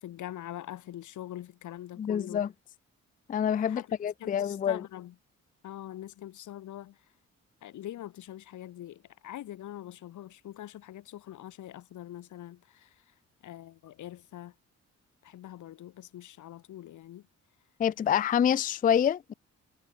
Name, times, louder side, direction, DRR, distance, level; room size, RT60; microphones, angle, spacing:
voice 1, 0.0-2.5 3.6-3.9 4.2-5.1 5.6-7.0 7.6-12.9 13.4-14.5 15.2-17.2, left 13 dB, 90° left, 2.1 m, -43 dB
voice 2, 2.0-2.5 3.3-4.8 17.8-19.3, left 9 dB, 30° left, 0.4 m, -27 dB
cardioid pair, 105°, 29 cm